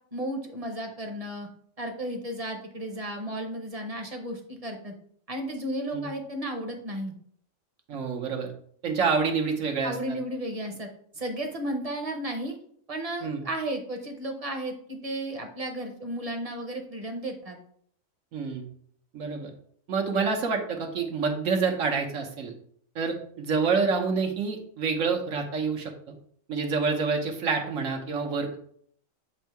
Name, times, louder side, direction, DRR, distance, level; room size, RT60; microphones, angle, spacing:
voice 1, 0.1-1.5 1.8-4.9 5.3-7.1 9.8-10.9 11.1-12.6 12.9-17.6, right 1 dB, 30° right, 3 dB, 0.9 m, -33 dB
voice 2, 7.9-8.5 8.8-10.2 13.2-13.4 18.3-18.7 19.1-19.5 19.9-22.5 22.9-26.1 26.5-28.6, right 5 dB, 75° right, 2 dB, 1.3 m, -27 dB
7.8 x 2.7 x 4.5 m, 0.62 s
omnidirectional pair, 1.4 m